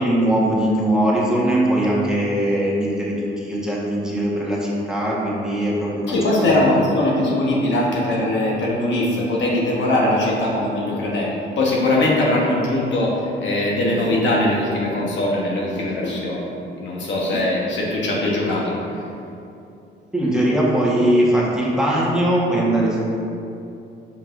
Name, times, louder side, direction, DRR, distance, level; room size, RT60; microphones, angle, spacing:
voice 1, 0.0-6.9 20.1-23.2, right 1 dB, 5° right, -6 dB, 1.3 m, -20 dB
voice 2, 6.1-16.4 16.8-18.7, left 1 dB, 70° left, -3 dB, 1.2 m, -21 dB
6.3 x 5.7 x 2.6 m, 2.7 s
cardioid pair, 90°, 20 cm